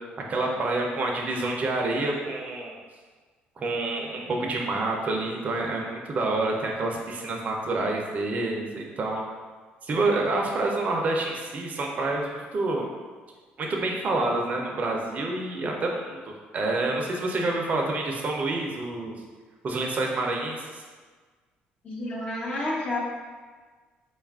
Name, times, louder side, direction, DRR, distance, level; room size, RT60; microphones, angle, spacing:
voice 1, 0.2-2.8 3.6-9.2 9.8-12.9 13.6-16.2 16.5-19.2 19.6-20.8, right 2 dB, 40° right, 0 dB, 0.6 m, -28 dB
voice 2, 21.8-23.0, left 1 dB, 40° left, -5 dB, 0.7 m, -30 dB
3.7 x 2.4 x 3.5 m, 1.4 s
cardioid pair, 85°, 4 cm